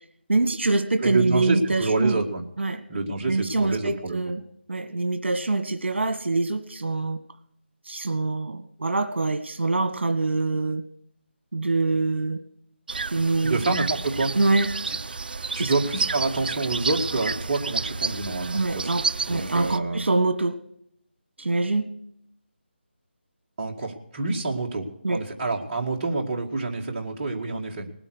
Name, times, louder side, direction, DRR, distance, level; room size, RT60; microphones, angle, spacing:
voice 1, 0.3-2.2 2.6-2.8 3.3-4.4 4.7-7.2 7.9-10.8 11.5-12.4 13.1-13.7 14.3-14.7 15.6-15.7 18.5-20.6 21.4-21.9 25.0-25.2, right 3 dB, 70° right, 8 dB, 1.6 m, -24 dB
voice 2, 1.0-2.4 2.9-4.2 13.4-14.3 14.9-15.0 15.3-19.0 19.3-20.0 23.6-27.9, right 3 dB, 25° right, -2 dB, 2.0 m, -27 dB
sound 1, 12.9-19.8, right 4 dB, 50° right, 0.5 m, -30 dB
19.5 x 8.9 x 6.2 m, 0.70 s
figure-of-eight pair, 165°, 6 cm